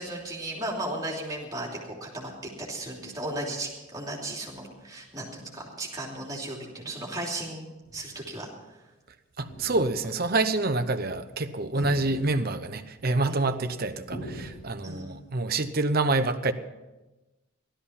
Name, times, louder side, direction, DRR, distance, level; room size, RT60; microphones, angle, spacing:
voice 1, 0.0-2.3 2.6-7.7 7.9-8.5 11.8-11.9 13.2-13.4 14.8-15.2, right 1 dB, 15° right, -3 dB, 3.0 m, -35 dB
sound 1, 7.8-8.3 9.4-10.2 11.8-12.7 14.1-15.0, right 1 dB, 50° left, 4.5 m, -42 dB
voice 2, 9.4-16.5, right 2 dB, 45° right, 9 dB, 0.8 m, -27 dB
16.5 x 13.0 x 5.7 m, 1.1 s
head